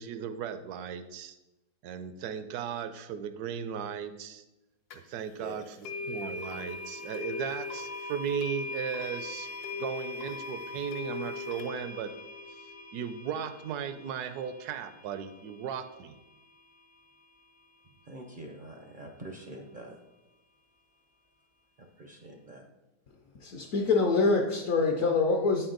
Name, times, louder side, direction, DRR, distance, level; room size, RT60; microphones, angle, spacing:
voice 1, 0.0-1.4 1.8-4.4 4.9-12.1 12.6-16.1, right 8 dB, 80° right, 10 dB, 1.1 m, -36 dB
sound 1, 4.9-5.0 5.8-16.8, left 3 dB, 80° left, 1.3 m, -40 dB
voice 2, 18.1-20.0 21.8-22.6, right 1 dB, 60° right, 3 dB, 0.5 m, -45 dB
voice 3, 23.4-25.7, left 4 dB, 65° left, 1 dB, 0.9 m, -25 dB
8.7 x 4.4 x 3.8 m, 1.0 s
omnidirectional pair, 1.7 m